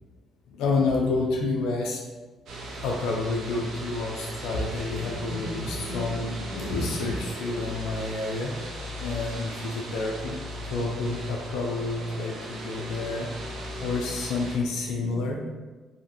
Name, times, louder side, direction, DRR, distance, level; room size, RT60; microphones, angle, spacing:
voice 1, 0.5-2.0 2.8-8.5 9.0-10.4 10.7-13.3 13.8-15.4, left 3 dB, 80° left, 0 dB, 0.4 m, -29 dB
sound 1, 2.5-14.6, right 1 dB, 70° right, 0.6 m, -37 dB
2.7 x 2.5 x 2.7 m, 1.3 s
supercardioid pair, 60°, 0 cm